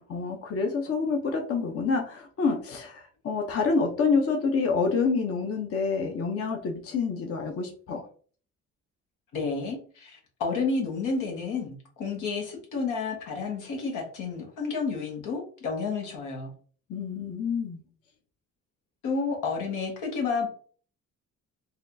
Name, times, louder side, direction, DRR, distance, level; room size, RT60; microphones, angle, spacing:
voice 1, 0.1-8.1 16.9-17.8, left 4 dB, 50° left, 3 dB, 0.7 m, -27 dB
voice 2, 9.3-16.5 19.0-20.5, left 4 dB, 90° left, 0 dB, 1.2 m, -30 dB
4.2 x 2.4 x 2.6 m, 0.43 s
cardioid pair, 90°, 30 cm